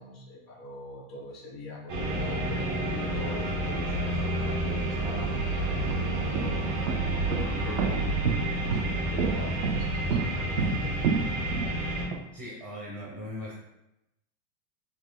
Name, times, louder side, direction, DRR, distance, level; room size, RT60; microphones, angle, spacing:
voice 1, 0.0-8.2 8.6-11.1, left 1 dB, ahead, -5 dB, 0.3 m, -43 dB
sound 1, 1.9-12.1, right 1 dB, 60° right, 1.2 m, -29 dB
sound 2, 4.9-5.0 5.7-12.2, right 5 dB, 80° right, 0.5 m, -30 dB
voice 2, 12.3-13.5, left 1 dB, 25° right, -6 dB, 0.7 m, -39 dB
4.1 x 2.9 x 2.3 m, 0.87 s
supercardioid pair, 165°, 34 cm